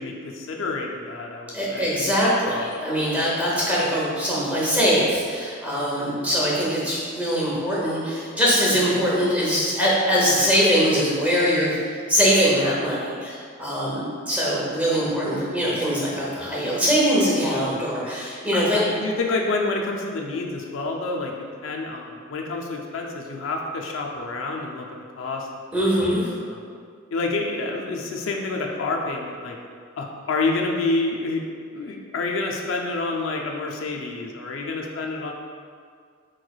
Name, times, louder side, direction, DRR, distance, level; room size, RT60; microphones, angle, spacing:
voice 1, 0.0-1.9 2.4-2.7 18.5-21.3 21.6-24.9 25.2-25.5 26.5-26.6 27.1-29.6 30.0-31.4 31.7-35.3, left 3 dB, 70° left, 0 dB, 0.4 m, -28 dB
voice 2, 1.5-18.8 25.7-26.3, equal, 5° right, -7 dB, 0.7 m, -22 dB
4.4 x 3.1 x 2.3 m, 2.1 s
head